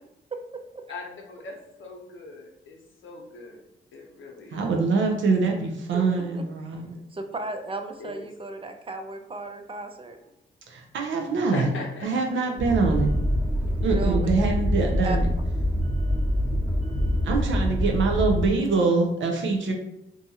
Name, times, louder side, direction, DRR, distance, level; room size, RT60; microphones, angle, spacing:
voice 1, 0.9-3.6 3.9-4.7 8.0-8.3 11.5-12.1, left 3 dB, 70° left, 0 dB, 0.7 m, -40 dB
voice 2, 4.5-7.0 10.7-11.7 12.0-13.1 13.8-15.3 17.2-19.7, right 4 dB, 70° right, 2 dB, 0.6 m, -24 dB
voice 3, 7.1-10.2 13.6-14.3 15.0-15.2, right 2 dB, 25° right, 6 dB, 0.4 m, -35 dB
sound 1, 12.6-18.4, equal, 5° right, 0.8 m, -25 dB
2.6 x 2.4 x 2.7 m, 0.83 s
supercardioid pair, 60°, 21 cm